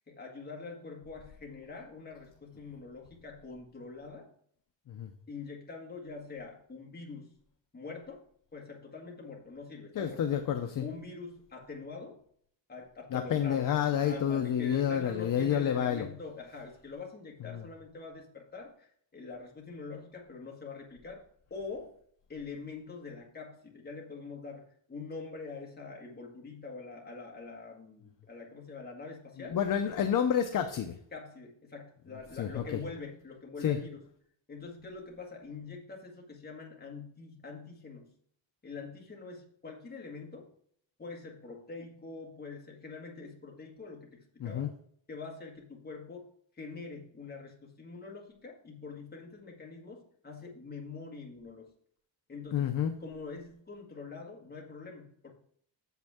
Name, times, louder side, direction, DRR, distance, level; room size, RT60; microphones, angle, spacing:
voice 1, 0.1-4.3 5.3-7.4 7.7-8.2 8.5-10.3 10.8-12.2 12.7-13.7 14.0-21.2 21.5-21.9 22.3-29.6 31.1-34.1 34.5-38.1 38.6-40.5 41.0-44.7 45.1-46.3 46.5-51.7 52.3-52.8 53.0-55.3, left 4 dB, 20° left, -1 dB, 1.7 m, -44 dB
voice 2, 10.0-10.8 13.1-16.1 17.5-17.6 29.5-31.0 32.4-32.6 33.6-33.8 44.4-44.7 52.5-52.9, left 9 dB, 45° left, 6 dB, 0.6 m, -29 dB
8.2 x 7.2 x 3.5 m, 0.63 s
wide cardioid pair, 175°, 48 cm